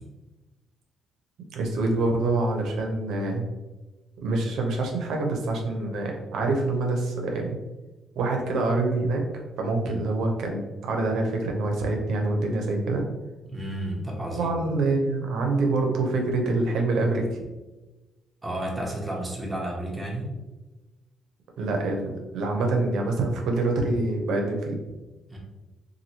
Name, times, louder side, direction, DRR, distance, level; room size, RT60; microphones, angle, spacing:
voice 1, 1.5-3.4 4.2-7.6 8.2-9.2 9.6-13.0 14.3-17.3 21.6-24.8, right 2 dB, 80° right, 1 dB, 0.6 m, -26 dB
voice 2, 13.4-14.6 18.4-20.3 25.3-25.4, right 1 dB, 15° right, -2 dB, 0.8 m, -32 dB
2.8 x 2.5 x 2.8 m, 1.1 s
cardioid pair, 90°, 0 cm